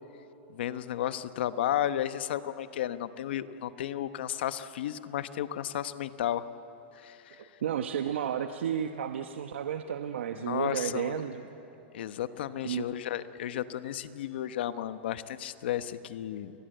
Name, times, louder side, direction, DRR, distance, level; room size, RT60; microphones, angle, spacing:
voice 1, 0.5-6.5 6.9-7.4 10.4-11.2 11.9-16.5, left 11 dB, 65° left, 12 dB, 1.0 m, -33 dB
voice 2, 7.6-11.4 12.6-12.9, right 9 dB, 85° right, 7 dB, 1.1 m, -32 dB
29.5 x 20.5 x 8.0 m, 3.0 s
supercardioid pair, 160°, 6 cm